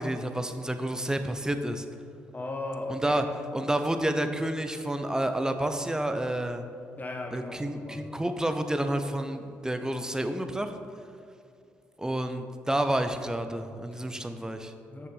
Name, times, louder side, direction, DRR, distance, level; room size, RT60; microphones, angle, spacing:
voice 1, 0.0-1.8 2.9-3.2 3.5-6.6 7.3-10.7 12.0-14.7, right 1 dB, 10° right, 8 dB, 0.8 m, -29 dB
voice 2, 2.3-3.2 7.0-8.1 13.9-14.1 14.9-15.1, left 2 dB, 30° left, 3 dB, 1.3 m, -37 dB
6.9 x 6.6 x 5.6 m, 2.4 s
hypercardioid pair, 45°, 6 cm